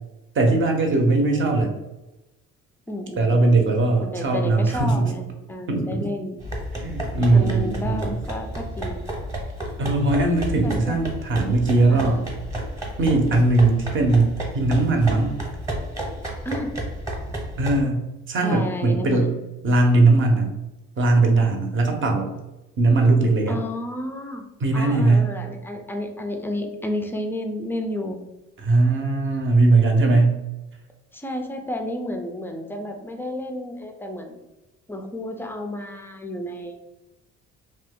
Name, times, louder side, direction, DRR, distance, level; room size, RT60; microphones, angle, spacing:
voice 1, 0.3-1.7 3.2-5.1 5.7-6.0 6.8-8.2 9.8-12.3 13.0-15.3 17.6-19.3 19.6-20.5 21.0-22.3 22.8-23.6 24.6-25.3 28.6-30.4, right 2 dB, 40° right, 3 dB, 0.6 m, -19 dB
voice 2, 2.9-3.5 4.0-6.4 7.3-9.0 10.6-11.0 11.9-12.3 16.4-16.8 18.4-19.4 23.5-24.4 24.7-28.2 31.1-34.4 34.9-36.8, left 1 dB, 10° left, 4 dB, 0.3 m, -31 dB
sound 1, 6.4-17.8, right 1 dB, 10° right, 0.8 m, -32 dB
2.6 x 2.2 x 3.5 m, 0.97 s
cardioid pair, 115°, 29 cm